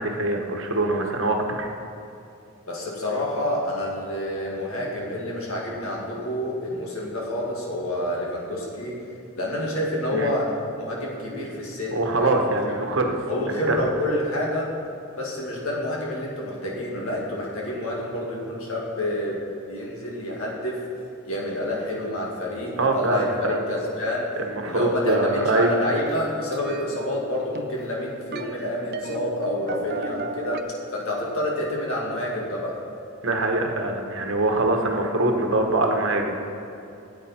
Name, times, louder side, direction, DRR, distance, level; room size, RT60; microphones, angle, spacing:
voice 1, 0.0-1.7 10.1-10.3 11.9-13.2 13.5-13.8 22.8-23.6 24.5-25.7 33.2-36.4, right 2 dB, 65° right, 3 dB, 1.2 m, -23 dB
voice 2, 2.7-9.0 9.3-12.4 13.3-14.7 15.2-20.9 21.3-24.3 24.6-32.8, left 1 dB, 85° left, -3 dB, 2.2 m, -28 dB
sound 1, 25.1-30.6, right 3 dB, 45° right, 0.4 m, -37 dB
13.5 x 8.4 x 4.3 m, 2.6 s
head